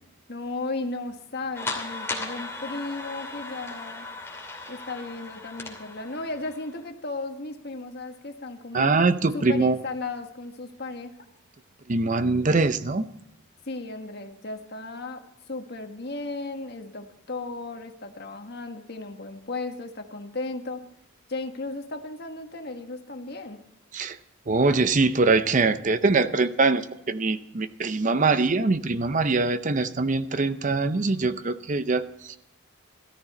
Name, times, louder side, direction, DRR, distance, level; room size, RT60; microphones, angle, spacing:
voice 1, 0.3-4.1 4.7-8.9 9.3-11.1 13.7-15.2 15.5-20.8 21.3-23.6, left 3 dB, 55° left, 5 dB, 1.5 m, -35 dB
sound 1, 1.5-6.8, left 3 dB, 10° left, 2.7 m, -37 dB
voice 2, 8.7-9.8 11.9-13.1 23.9-24.2 24.5-32.4, right 3 dB, 40° right, 12 dB, 0.6 m, -23 dB
14.0 x 13.5 x 4.3 m, 0.82 s
head